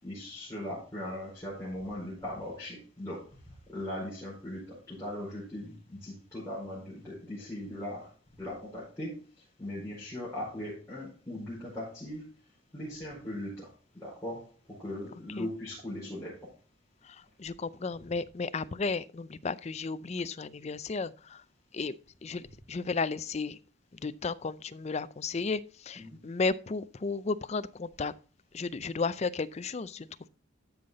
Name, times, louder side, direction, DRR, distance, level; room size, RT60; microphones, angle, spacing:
voice 1, 0.0-8.1 8.4-12.2 12.7-16.5 26.0-26.2, left 1 dB, 15° left, 4.9 m, -39 dB
voice 2, 17.0-21.4 21.7-22.0 22.2-23.6 24.0-28.1 28.5-30.1, left 4 dB, 35° left, 0.5 m, -34 dB
13.0 x 5.6 x 4.0 m
head